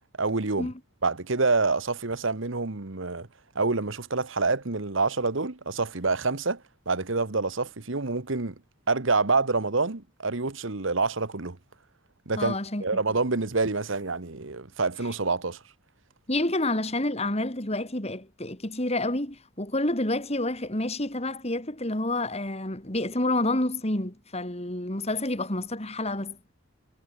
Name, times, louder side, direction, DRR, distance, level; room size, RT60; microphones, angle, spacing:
voice 1, 0.2-0.7 1.0-3.3 3.5-8.5 8.9-11.6 12.3-12.5 12.8-15.6, right 3 dB, 65° right, 1.3 m, -27 dB
voice 2, 12.3-12.8 16.3-26.4, left 1 dB, 30° left, 3.0 m, -29 dB
head